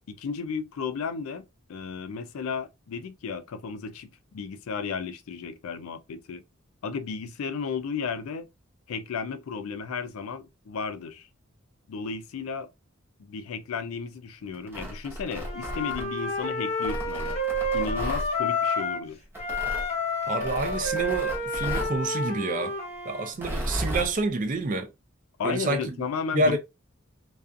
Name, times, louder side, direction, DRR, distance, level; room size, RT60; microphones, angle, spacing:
voice 1, 0.1-1.4 1.7-6.4 6.8-8.5 8.9-11.3 11.9-12.7 13.2-17.4 17.7-19.2 25.4-26.6, left 5 dB, 80° left, 0.4 m, -34 dB
Tearing, 14.5-16.3 16.8-18.3 19.3-19.9 20.4-22.0 23.3-24.1, equal, 10° right, 0.7 m, -34 dB
Wind instrument woodwind instrument, 15.4-19.1 19.4-23.3, left 2 dB, 30° left, 0.6 m, -30 dB
voice 2, 20.3-22.7 23.0-24.9 25.4-25.9 26.3-26.6, right 2 dB, 40° right, 0.4 m, -28 dB
2.4 x 2.3 x 2.5 m
head